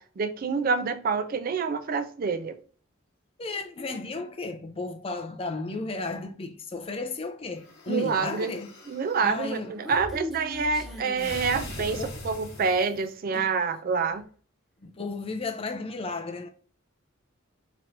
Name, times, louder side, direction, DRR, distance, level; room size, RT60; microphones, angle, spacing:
voice 1, 0.0-2.6 7.9-8.6 8.9-14.2, right 5 dB, 45° right, 0.4 m, -27 dB
voice 2, 3.4-8.7 9.2-9.8 11.8-12.1 13.3-13.5 14.8-16.5, left 3 dB, 30° left, 0.5 m, -34 dB
sound 1, 7.6-9.3 11.2-13.1, left 1 dB, 50° left, 1.2 m, -41 dB
Human voice, 9.4-12.2, left 1 dB, ahead, 1.1 m, -40 dB
4.4 x 3.0 x 2.6 m
head